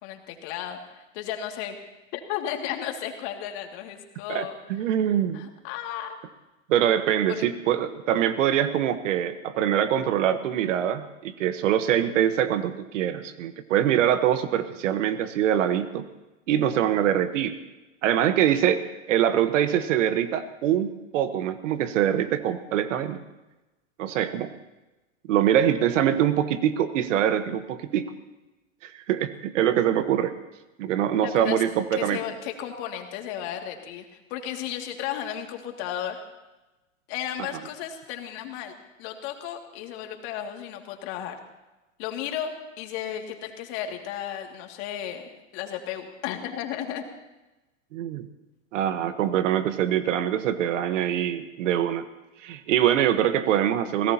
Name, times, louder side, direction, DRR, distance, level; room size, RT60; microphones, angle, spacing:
voice 1, 0.0-1.8 2.1-4.6 5.3-6.2 7.3-7.5 31.2-31.6 32.0-36.2 37.1-41.3 42.0-42.5 42.8-47.0, left 10 dB, 55° left, 3 dB, 2.4 m, -34 dB
voice 2, 4.3-5.4 6.7-16.0 16.5-17.6 18.0-23.2 24.0-24.5 25.3-28.1 28.8-30.3 30.8-32.2 47.9-48.3 48.7-52.1 52.4-54.1, right 10 dB, 70° right, 11 dB, 1.3 m, -24 dB
25.5 x 17.5 x 2.9 m, 1.1 s
hypercardioid pair, 110°, 39 cm